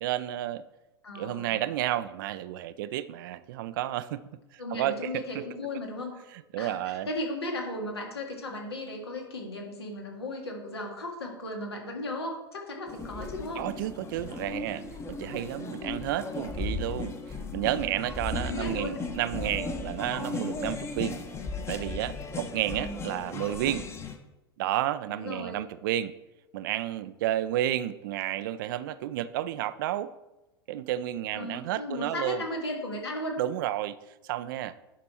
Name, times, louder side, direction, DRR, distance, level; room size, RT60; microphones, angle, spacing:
voice 1, 0.0-0.6 1.1-4.2 4.5-5.4 6.3-7.1 13.6-17.1 17.5-21.2 21.7-23.9 24.6-26.1 26.5-30.1 30.7-32.4 33.4-34.0 34.2-34.7, right 13 dB, 55° right, 15 dB, 0.4 m, -31 dB
voice 2, 1.0-1.7 4.6-6.1 6.6-6.8 7.1-13.7 18.5-19.0 22.7-23.0 25.1-25.6 31.3-33.4, left 1 dB, 75° left, 1 dB, 1.9 m, -36 dB
sound 1, 12.9-24.2, left 3 dB, 20° left, 1.0 m, -36 dB
10.0 x 5.2 x 4.3 m, 1.0 s
figure-of-eight pair, 85°, 13 cm